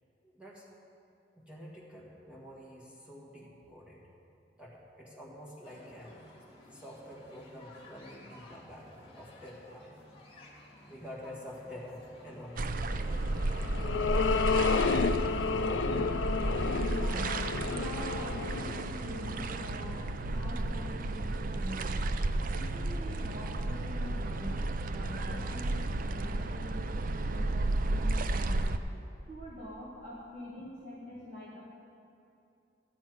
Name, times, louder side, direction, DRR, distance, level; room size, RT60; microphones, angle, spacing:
voice 1, 0.3-0.7 1.3-4.0 4.6-6.3 6.7-10.0 10.9-12.8 17.6-17.8, equal, 5° right, -6 dB, 1.7 m, -48 dB
sound 1, 5.6-15.4, left 1 dB, 30° left, 2.2 m, -55 dB
sound 2, 12.6-28.8, right 2 dB, 50° right, 0.5 m, -33 dB
sound 3, 13.2-19.8, left 5 dB, 90° left, 0.4 m, -31 dB
voice 2, 16.9-17.4 17.7-22.0 22.5-24.6 24.9-28.7 29.3-31.6, equal, 35° right, -8 dB, 1.9 m, -44 dB
13.0 x 5.9 x 9.4 m, 2.7 s
head